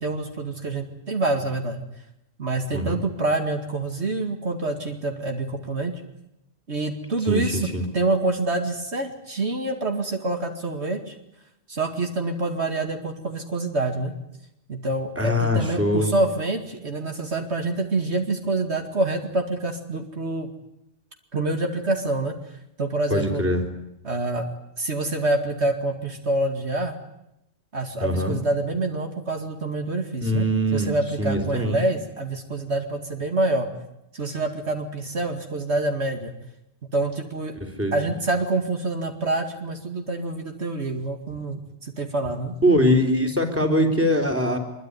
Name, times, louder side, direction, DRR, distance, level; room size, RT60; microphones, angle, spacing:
voice 1, 0.0-1.8 2.4-5.9 6.7-7.6 7.9-11.1 11.7-14.1 14.7-20.5 21.3-22.4 22.8-23.4 24.0-24.4 24.8-27.0 27.7-33.7 34.1-36.3 36.9-37.5 37.9-42.6, right 2 dB, 65° right, 4 dB, 2.5 m, -26 dB
voice 2, 7.3-7.8 15.2-16.1 23.1-23.7 28.0-28.4 30.2-30.9 31.2-31.8 37.6-37.9 42.6-44.6, equal, 10° right, 3 dB, 3.9 m, -22 dB
24.5 x 22.5 x 9.8 m, 0.85 s
omnidirectional pair, 1.2 m